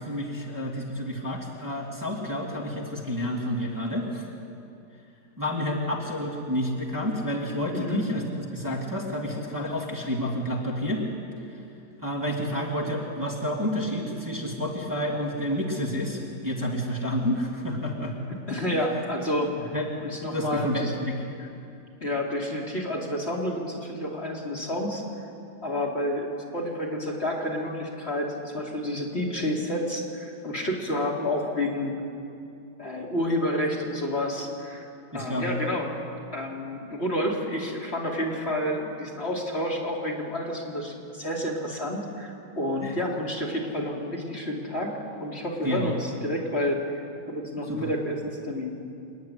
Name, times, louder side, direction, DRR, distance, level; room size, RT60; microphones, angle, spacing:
voice 1, 0.0-4.2 5.4-8.2 8.5-11.0 12.0-18.1 19.7-19.9 20.3-21.5 35.1-35.5 42.8-43.0 45.6-45.9 47.7-47.9, equal, 10° right, -4 dB, 2.5 m, -29 dB
voice 2, 18.5-20.9 22.0-25.0 25.6-26.3 26.5-31.9 32.8-34.9 35.1-36.0 36.3-44.9 45.2-48.7, left 1 dB, 40° left, -3 dB, 2.9 m, -29 dB
28.0 x 10.5 x 9.7 m, 2.6 s
omnidirectional pair, 1.7 m